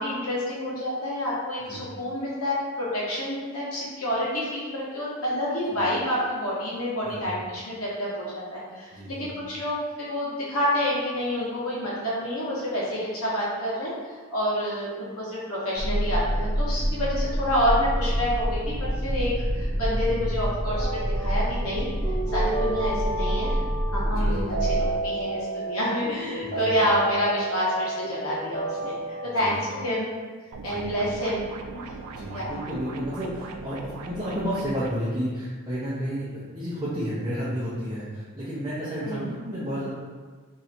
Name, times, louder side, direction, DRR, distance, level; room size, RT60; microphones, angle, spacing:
voice 1, 0.0-13.9 14.3-18.7 19.0-21.9 22.3-23.6 23.9-29.0 29.3-30.1 30.6-31.4 32.3-32.5 39.0-39.3, left 1 dB, 75° left, -7 dB, 1.0 m, -28 dB
voice 2, 8.9-9.4 24.1-24.6 26.4-26.9 29.3-29.7 30.6-31.0 32.1-39.9, equal, 20° right, -10 dB, 0.6 m, -32 dB
sound 1, 15.8-24.9, equal, 50° right, 0.8 m, -27 dB
sound 2, 20.7-29.8, right 3 dB, 20° left, 1.3 m, -31 dB
sound 3, 30.5-34.9, right 4 dB, 90° right, 0.4 m, -40 dB
3.1 x 2.7 x 4.2 m, 1.4 s
head